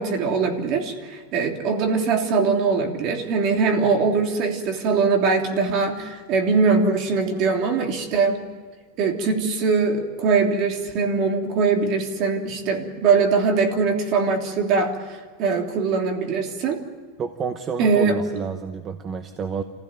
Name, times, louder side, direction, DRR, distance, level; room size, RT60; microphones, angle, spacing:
voice 1, 0.0-8.4 9.0-16.8 17.8-18.2, right 4 dB, 40° right, 3 dB, 3.1 m, -22 dB
voice 2, 17.2-19.6, right 6 dB, 25° right, 8 dB, 1.0 m, -29 dB
27.0 x 16.0 x 9.3 m, 1.5 s
supercardioid pair, 165°, 0 cm